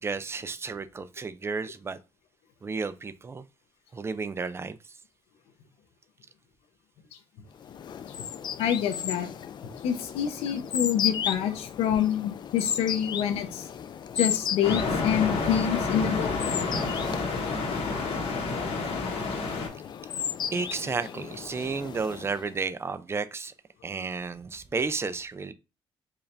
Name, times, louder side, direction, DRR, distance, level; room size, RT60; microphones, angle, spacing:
voice 1, 0.0-2.0 2.6-3.4 3.9-5.0 20.2-20.3 20.5-23.5 23.8-25.5, right 4 dB, 25° right, 0.4 m, -32 dB
sound 1, 7.6-22.6, left 8 dB, 50° left, 0.4 m, -35 dB
voice 2, 8.6-9.3 9.8-13.7 14.2-16.3, left 9 dB, 90° left, 0.8 m, -27 dB
sound 2, 14.6-19.7, left 3 dB, 70° left, 1.3 m, -29 dB
4.7 x 2.5 x 3.3 m
cardioid pair, 90°, 10 cm